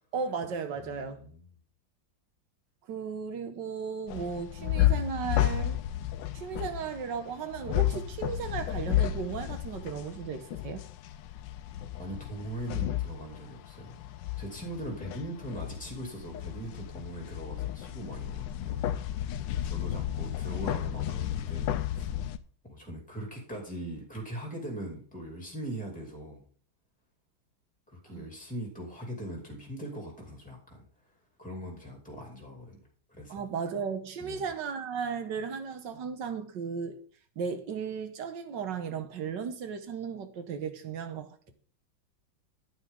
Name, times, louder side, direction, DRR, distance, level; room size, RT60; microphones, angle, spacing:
voice 1, 0.1-1.2 2.9-5.8 6.3-10.8 28.1-28.3 33.3-37.0 37.4-41.5, right 6 dB, 70° right, 1.6 m, -35 dB
voice 2, 0.8-1.5 12.0-14.0 14.4-19.3 19.6-22.1 22.6-26.4 27.9-33.4 34.2-34.5, right 1 dB, 5° left, 2.6 m, -41 dB
sound 1, 4.1-22.4, left 12 dB, 75° left, 1.2 m, -32 dB
9.2 x 9.2 x 3.7 m
omnidirectional pair, 2.1 m